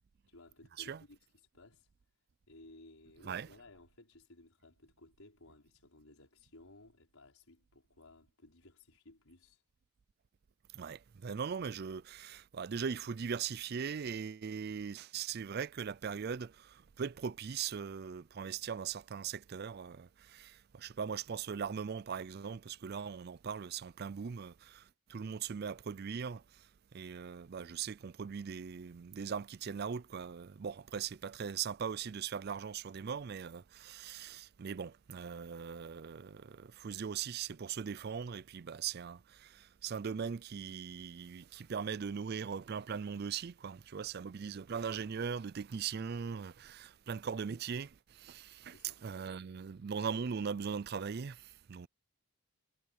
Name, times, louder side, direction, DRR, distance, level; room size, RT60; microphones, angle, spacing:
voice 1, 0.3-1.9 2.5-9.6 48.7-49.4, left 2 dB, 90° left, 5.1 m, -59 dB
voice 2, 10.7-51.9, right 6 dB, 50° right, 0.4 m, -40 dB
head